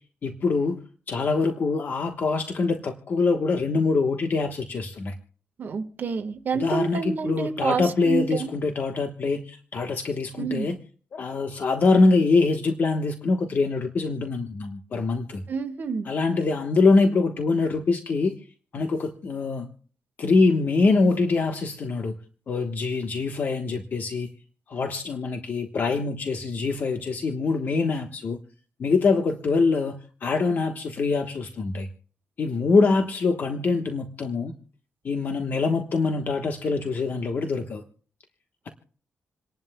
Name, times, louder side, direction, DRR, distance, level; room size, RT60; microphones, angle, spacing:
voice 1, 0.2-0.8 1.1-5.1 6.5-10.8 11.1-15.4 16.0-18.4 18.7-19.7 20.2-22.1 22.5-24.3 24.7-28.4 28.8-30.0 30.2-31.9 32.4-34.5 35.0-37.8, left 3 dB, 45° left, 1.2 m, -24 dB
voice 2, 5.6-8.5 10.4-10.7 15.5-16.1, right 5 dB, 45° right, 1.6 m, -28 dB
28.5 x 11.0 x 2.3 m
cardioid pair, 135°, 4 cm